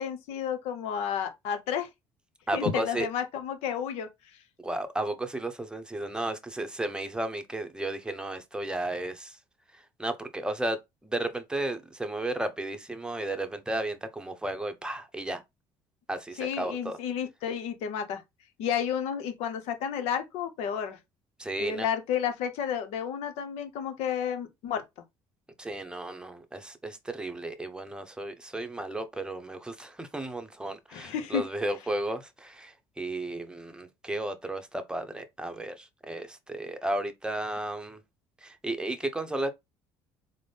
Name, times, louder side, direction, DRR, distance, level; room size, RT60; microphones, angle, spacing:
voice 1, 0.0-1.9 2.5-4.1 16.4-18.2 18.6-21.0 21.6-24.8 30.9-31.4, left 8 dB, 75° left, 0.8 m, -31 dB
voice 2, 2.5-3.1 4.6-9.4 10.0-10.8 11.0-15.4 16.1-17.0 21.4-21.9 25.6-38.0 38.4-39.5, right 1 dB, 10° right, 0.8 m, -33 dB
3.8 x 2.1 x 3.3 m
supercardioid pair, 80°, 11 cm